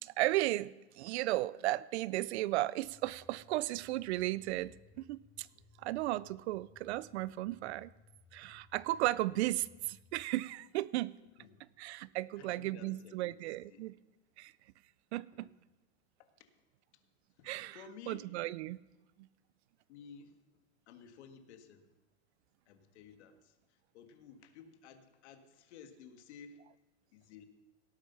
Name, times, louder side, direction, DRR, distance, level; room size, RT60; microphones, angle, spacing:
voice 1, 0.0-5.5 5.8-7.9 8.3-11.1 11.8-13.9 14.4-14.5 15.1-15.5 17.4-17.8 18.1-18.8, right 17 dB, 70° right, 0.5 m, -35 dB
sound 1, 2.8-10.2, left 4 dB, 20° left, 3.1 m, -63 dB
voice 2, 12.4-13.9 15.3-15.6 16.2-16.6 17.4-18.3 19.9-20.4 20.9-21.8 22.7-26.6 27.1-27.4, left 6 dB, 70° left, 1.8 m, -55 dB
18.0 x 8.1 x 5.7 m
supercardioid pair, 160°, 35 cm